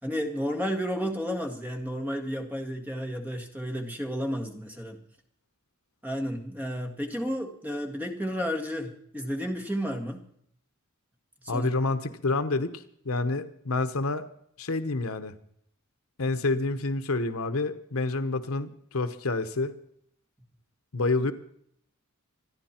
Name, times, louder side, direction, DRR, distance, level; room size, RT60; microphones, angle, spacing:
voice 1, 0.0-5.0 6.0-10.2 11.5-11.7, equal, 5° right, 3 dB, 2.0 m, -32 dB
voice 2, 11.5-14.2 14.6-15.3 16.2-19.7 20.9-21.3, left 3 dB, 75° left, 11 dB, 1.1 m, -28 dB
26.0 x 10.5 x 4.5 m, 0.68 s
head